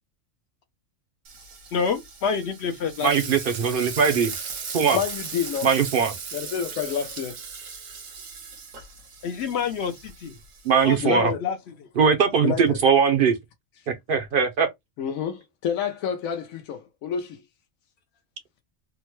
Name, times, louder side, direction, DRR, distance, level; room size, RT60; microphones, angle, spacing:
Frying (food), 1.2-11.0, right 5 dB, 85° right, 1.3 m, -38 dB
voice 1, 1.7-3.3 9.2-10.3 10.8-11.9, left 6 dB, 65° left, 0.7 m, -28 dB
voice 2, 3.0-4.3 4.7-5.0 5.6-6.1 10.6-11.3 12.0-13.3 13.9-14.7, right 6 dB, 60° right, 0.6 m, -20 dB
voice 3, 4.9-5.7 6.3-7.3 11.0-11.4 12.4-12.8 15.0-17.4, left 8 dB, 85° left, 1.0 m, -28 dB
3.5 x 2.1 x 3.0 m
omnidirectional pair, 1.4 m